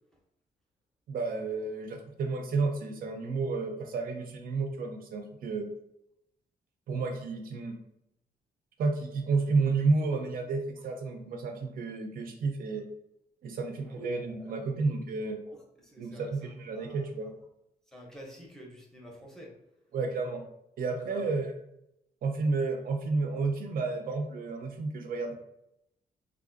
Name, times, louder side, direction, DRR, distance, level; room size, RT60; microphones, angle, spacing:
voice 1, 1.1-5.7 6.9-7.7 8.8-12.9 13.4-15.4 16.0-17.3 19.9-20.4 20.8-21.5 22.2-25.3, right 3 dB, 65° right, 4 dB, 0.5 m, -31 dB
voice 2, 14.4-14.8 15.5-16.5 16.8-17.1 17.9-19.5 21.0-21.3, equal, 5° left, -2 dB, 0.6 m, -48 dB
3.4 x 2.4 x 2.5 m, 0.81 s
wide cardioid pair, 170°, 16 cm